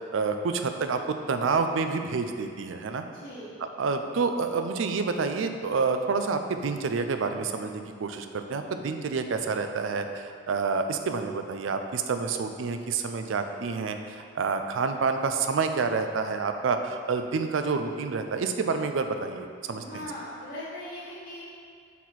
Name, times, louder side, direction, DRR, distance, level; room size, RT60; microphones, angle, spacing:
voice 1, 0.1-3.0 3.6-20.1, right 4 dB, 85° right, 7 dB, 0.4 m, -28 dB
voice 2, 3.1-3.6 19.7-21.4, left 1 dB, 70° left, -13 dB, 1.4 m, -39 dB
6.3 x 4.2 x 4.2 m, 2.3 s
head